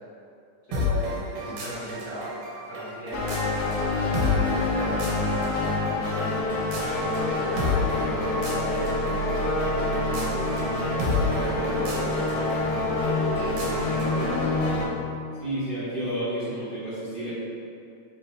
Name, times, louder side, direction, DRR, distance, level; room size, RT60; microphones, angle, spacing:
voice 1, 0.7-2.3 2.7-6.6 7.3-10.7 11.0-12.5 12.9-14.9, right 1 dB, 55° left, -16 dB, 1.1 m, -38 dB
sound 1, 0.7-14.4, left 3 dB, 80° right, 2.3 m, -32 dB
sound 2, 3.1-14.9, left 2 dB, 80° left, 1.5 m, -26 dB
voice 2, 15.4-17.3, right 1 dB, 60° right, -14 dB, 0.5 m, -30 dB
4.9 x 2.7 x 3.2 m, 2.5 s
omnidirectional pair, 3.6 m